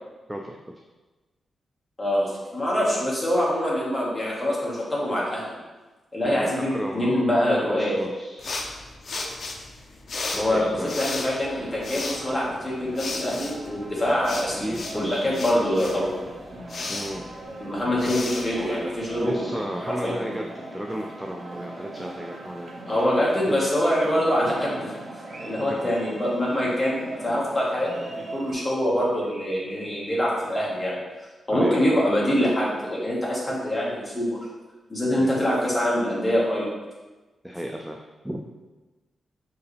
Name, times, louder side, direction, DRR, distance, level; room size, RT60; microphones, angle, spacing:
voice 1, 0.3-0.7 6.2-7.3 7.6-8.5 10.3-11.0 14.6-15.4 16.9-17.3 18.0-18.2 19.2-22.8 23.5-23.6 25.7-25.9 31.5-31.9 35.1-35.5 37.4-38.5, equal, 5° right, 1 dB, 0.3 m, -33 dB
voice 2, 2.0-5.6 6.1-7.9 10.3-16.1 17.6-19.6 20.0-20.1 22.9-24.9 25.4-31.0 31.5-34.4 34.9-36.7, equal, 10° left, -6 dB, 1.7 m, -24 dB
sound 1, 8.4-19.3, left 3 dB, 45° left, 0.6 m, -35 dB
sound 2, 11.5-28.5, right 2 dB, 50° right, 1.0 m, -40 dB
6.1 x 4.6 x 3.4 m, 1.2 s
wide cardioid pair, 150°, 0 cm